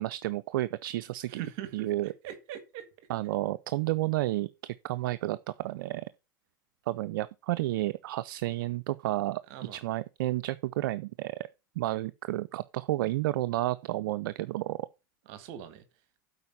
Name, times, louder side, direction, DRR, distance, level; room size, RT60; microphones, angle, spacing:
voice 1, 0.0-1.4 1.7-2.1 3.1-6.0 6.9-9.4 9.7-11.4 11.8-14.8, right 16 dB, 80° right, 0.4 m, -31 dB
voice 2, 1.3-2.9 9.5-9.8 15.3-15.8, right 10 dB, 65° right, 1.6 m, -41 dB
7.9 x 4.8 x 7.1 m
hypercardioid pair, 100°, 11 cm